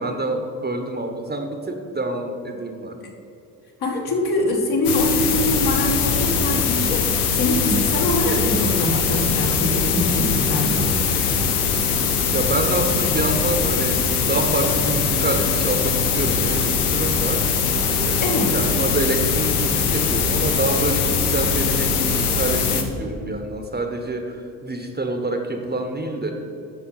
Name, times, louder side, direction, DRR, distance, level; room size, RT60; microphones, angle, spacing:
voice 1, 0.0-3.0 12.3-17.4 18.0-26.3, right 2 dB, 20° right, 4 dB, 1.2 m, -26 dB
voice 2, 3.8-10.9 18.2-18.5, left 1 dB, 55° left, -1 dB, 2.1 m, -23 dB
sound 1, 4.8-22.8, left 5 dB, 90° left, 0.8 m, -21 dB
9.1 x 6.2 x 5.7 m, 2.7 s
hypercardioid pair, 50°, 44 cm